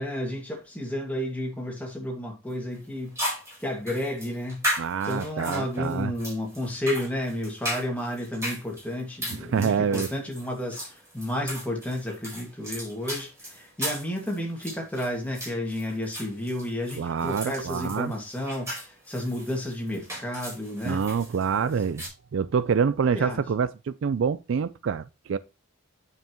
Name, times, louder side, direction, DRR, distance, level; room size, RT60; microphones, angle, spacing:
voice 1, 0.0-3.2 3.6-4.6 5.0-21.0 21.6-21.7 23.1-23.4, left 1 dB, 5° left, 2.0 m, -32 dB
sound 1, 2.5-2.6 3.2-22.1, equal, 15° right, 4.0 m, -36 dB
voice 2, 4.8-6.1 9.5-10.1 17.0-18.1 20.8-22.0 22.3-25.4, right 6 dB, 60° right, 0.3 m, -26 dB
9.2 x 5.5 x 3.0 m
head